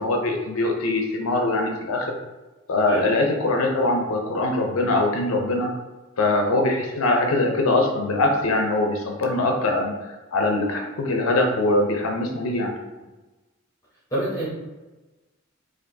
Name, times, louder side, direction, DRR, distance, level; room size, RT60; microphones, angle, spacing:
voice 1, 0.0-2.2 2.7-5.7 6.2-9.9 10.3-12.7, left 2 dB, 85° left, 2 dB, 0.6 m, -22 dB
voice 2, 14.1-14.5, right 1 dB, 15° left, -7 dB, 0.8 m, -27 dB
4.4 x 2.5 x 2.6 m, 1.1 s
head